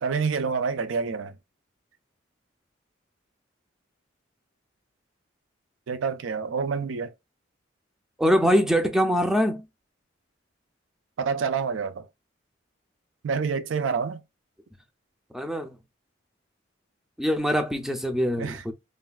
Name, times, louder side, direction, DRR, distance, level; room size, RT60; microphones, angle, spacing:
voice 1, 0.0-1.3 5.9-7.1 11.2-12.1 13.2-14.2 18.4-18.6, right 5 dB, 80° right, 0.4 m, -27 dB
voice 2, 8.2-9.6 15.3-15.7 17.2-18.7, equal, ahead, 0.4 m, -23 dB
3.2 x 2.2 x 2.2 m
head